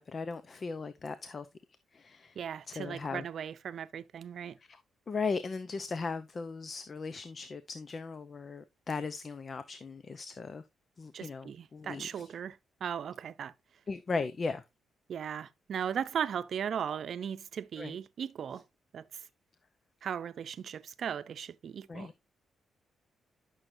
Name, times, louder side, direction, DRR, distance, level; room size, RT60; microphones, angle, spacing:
voice 1, 0.0-1.5 1.9-2.4 2.7-3.2 5.1-10.6 11.0-12.3 13.9-14.6 17.8-18.0 21.9-22.1, left 4 dB, 40° left, 0.7 m, -37 dB
voice 2, 2.4-4.6 11.1-13.5 15.1-18.6 18.9-19.2 20.0-22.1, right 8 dB, 60° right, 0.7 m, -37 dB
10.5 x 6.3 x 2.6 m
cardioid pair, 100°, 0 cm